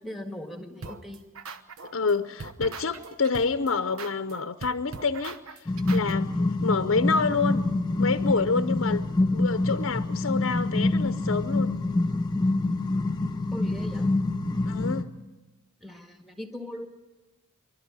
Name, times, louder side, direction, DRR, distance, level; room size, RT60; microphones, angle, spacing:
voice 1, 0.0-1.3 13.5-14.1 15.8-16.9, left 1 dB, ahead, 5 dB, 1.8 m, -39 dB
sound 1, 0.8-2.1 2.4-6.1, right 4 dB, 85° right, 1.1 m, -40 dB
voice 2, 1.9-5.4 5.9-7.7 8.0-9.0 9.3-11.7 14.7-15.1, left 4 dB, 65° left, 10 dB, 0.7 m, -27 dB
sound 2, 5.7-15.0, left 2 dB, 20° left, 1.0 m, -26 dB
25.5 x 12.0 x 9.8 m, 1.1 s
head